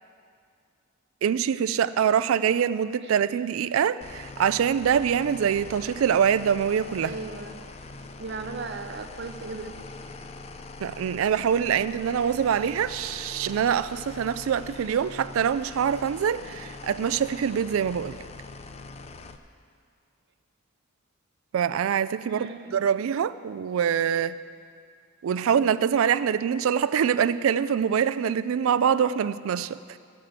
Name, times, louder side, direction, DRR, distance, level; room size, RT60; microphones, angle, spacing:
voice 1, 1.2-7.2 10.8-18.2 21.5-22.5 22.7-24.4 25.2-30.0, right 8 dB, 85° right, 0.3 m, -24 dB
sound 1, 4.0-19.4, left 3 dB, 30° left, 0.4 m, -42 dB
voice 2, 7.0-7.5 8.2-9.8 22.3-22.8, right 3 dB, 55° right, 0.7 m, -37 dB
14.5 x 5.0 x 7.3 m
head